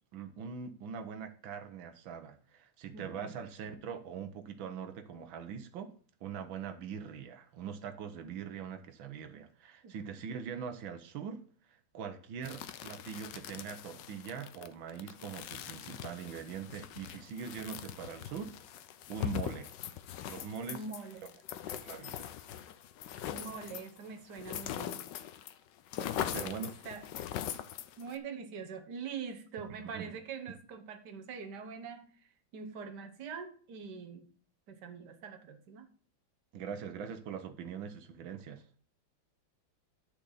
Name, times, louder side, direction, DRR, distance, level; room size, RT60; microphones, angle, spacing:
voice 1, 0.1-5.9 6.2-11.5 11.9-18.6 19.1-19.7 20.2-20.8 21.7-22.3 26.3-26.8 29.8-30.1 36.5-38.8, right 7 dB, 75° right, 1.8 m, -42 dB
voice 2, 2.9-3.4 9.8-10.0 20.7-21.3 23.3-25.1 26.0-27.1 28.0-34.3 34.7-35.9, right 5 dB, 60° right, 1.7 m, -44 dB
sound 1, 12.4-25.5 25.8-28.2, left 10 dB, 70° left, 1.3 m, -41 dB
9.7 x 6.6 x 4.0 m
omnidirectional pair, 2.2 m